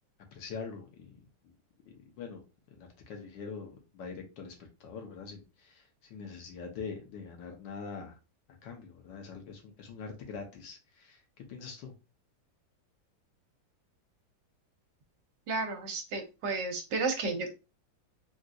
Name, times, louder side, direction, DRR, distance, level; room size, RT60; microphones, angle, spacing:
voice 1, 0.3-1.5 1.9-2.4 2.7-4.5 4.8-8.2 8.6-11.9, left 5 dB, 70° left, 1.4 m, -44 dB
voice 2, 15.5-17.5, right 3 dB, 70° right, 1.4 m, -32 dB
4.0 x 2.4 x 2.4 m
omnidirectional pair, 2.1 m